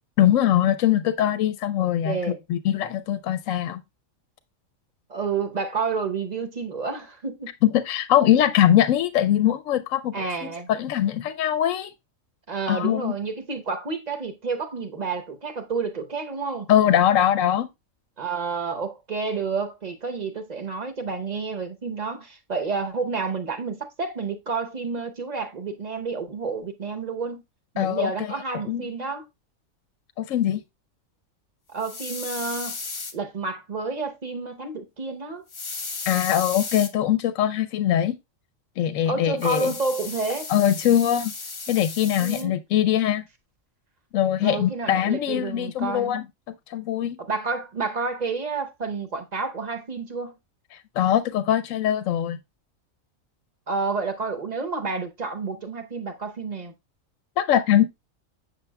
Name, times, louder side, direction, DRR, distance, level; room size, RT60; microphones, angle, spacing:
voice 1, 0.2-3.8 7.6-11.9 12.7-13.1 16.7-17.7 27.8-28.3 28.7-28.9 30.2-30.6 36.1-38.2 38.8-39.7 40.5-41.3 41.7-43.2 44.1-47.2 51.0-52.4 57.4-57.9, left 11 dB, 80° left, 1.0 m, -22 dB
voice 2, 2.0-2.4 5.1-7.5 10.1-10.7 12.5-16.7 18.2-27.4 27.7-29.3 31.7-32.8 33.1-35.4 39.1-40.5 42.2-42.6 44.4-46.1 47.2-50.3 53.7-56.7, right 4 dB, 35° right, 0.8 m, -30 dB
sound 1, 31.8-33.1 35.5-36.9 39.4-42.4, left 4 dB, 30° left, 0.6 m, -35 dB
6.9 x 6.7 x 2.2 m
omnidirectional pair, 1.4 m